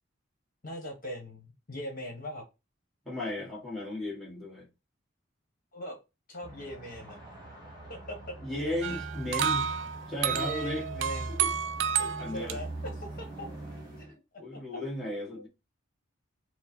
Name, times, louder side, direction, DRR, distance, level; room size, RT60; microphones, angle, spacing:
voice 1, 0.6-2.4 5.7-6.0 6.3-7.2 7.9-8.3 8.9-9.0 9.4-9.5 10.2-11.5 12.3-13.5 14.0-14.2 14.5-14.6 15.3-15.5, equal, 45° left, 1.3 m, -40 dB
voice 2, 3.0-4.7 8.4-9.8 10.1-10.8 11.3-11.5 12.0-12.6 14.4-15.5, left 1 dB, ahead, 1.7 m, -35 dB
sound 1, 6.4-14.1, right 2 dB, 20° right, 1.5 m, -42 dB
sound 2, 8.8-12.6, right 8 dB, 65° right, 0.3 m, -31 dB
4.3 x 2.1 x 4.4 m
head